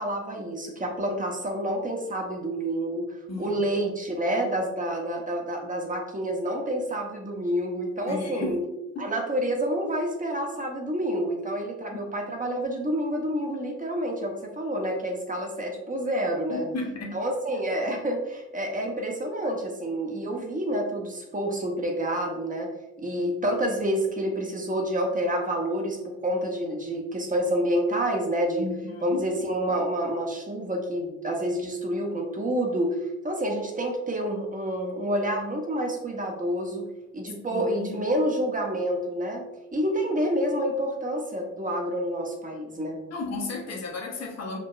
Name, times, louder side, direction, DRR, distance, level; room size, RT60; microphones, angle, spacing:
voice 1, 0.0-8.6 9.0-16.7 17.1-22.7 23.0-28.7 29.0-33.0 33.2-36.9 37.1-39.4 39.7-43.0, right 1 dB, 20° right, 1 dB, 1.0 m, -28 dB
voice 2, 3.3-3.6 8.1-8.6 8.9-9.1 11.9-12.0 16.5-17.2 28.6-29.2 37.5-38.1 43.1-44.6, left 3 dB, 45° left, 1 dB, 1.0 m, -34 dB
4.7 x 2.8 x 2.4 m, 0.99 s
figure-of-eight pair, 40°, 38 cm